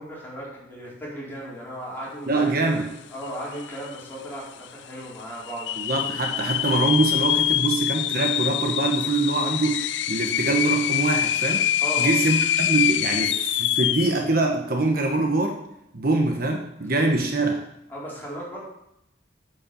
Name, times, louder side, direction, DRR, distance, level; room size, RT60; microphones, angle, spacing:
voice 1, 0.0-2.8 3.1-6.1 10.4-10.5 11.8-12.2 17.9-18.6, right 1 dB, 10° left, -7 dB, 4.7 m, -36 dB
voice 2, 2.3-2.8 5.8-11.6 12.0-15.6 15.9-17.6, right 2 dB, 50° right, 3 dB, 1.2 m, -24 dB
sound 1, 3.3-3.4 3.6-4.1 4.6-4.7 5.5-14.2, left 12 dB, 65° left, 0.4 m, -25 dB
8.7 x 8.7 x 7.0 m, 0.82 s
head